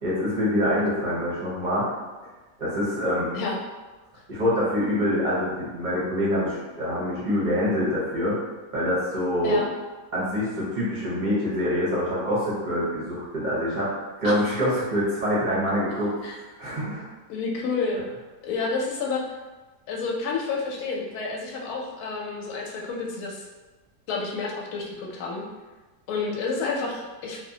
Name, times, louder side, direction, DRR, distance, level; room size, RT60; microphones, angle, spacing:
voice 1, 0.0-1.8 2.6-3.3 4.3-8.4 8.7-9.6 10.1-13.9 14.2-17.1, equal, 50° right, -8 dB, 0.6 m, -25 dB
voice 2, 17.3-18.1 18.4-19.2 19.9-23.4 24.1-25.4 26.1-27.4, left 4 dB, 70° left, -1 dB, 1.0 m, -29 dB
2.9 x 2.0 x 2.7 m, 1.2 s
omnidirectional pair, 1.8 m